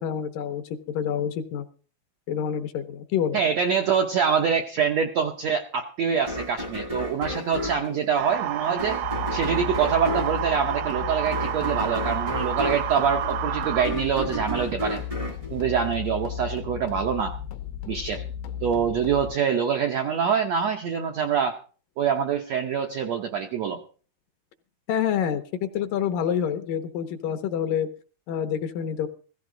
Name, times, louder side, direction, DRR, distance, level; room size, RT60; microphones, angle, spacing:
voice 1, 0.0-1.7 2.3-3.4 24.9-27.9 28.3-29.1, left 8 dB, 70° left, 8 dB, 2.3 m, -27 dB
voice 2, 3.3-9.0 9.3-15.0 15.5-17.3 17.9-18.2 18.6-21.6 22.0-23.8, right 7 dB, 75° right, 4 dB, 1.6 m, -25 dB
sound 1, 6.3-16.5, left 1 dB, 20° right, 0.8 m, -33 dB
sound 2, 8.2-13.9, right 12 dB, 90° right, 1.6 m, -30 dB
sound 3, 9.0-19.4, left 9 dB, 90° left, 2.8 m, -35 dB
16.0 x 14.5 x 3.8 m, 0.39 s
omnidirectional pair, 4.4 m